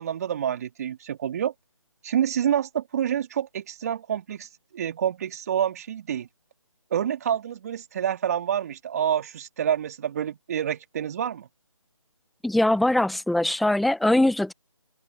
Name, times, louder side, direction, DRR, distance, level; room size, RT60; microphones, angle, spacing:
voice 1, 0.0-1.5 2.0-6.3 6.9-11.5, right 9 dB, 30° right, 2.7 m, -27 dB
voice 2, 12.4-14.5, left 1 dB, ahead, 0.5 m, -22 dB
open air
figure-of-eight pair, 160°, 17 cm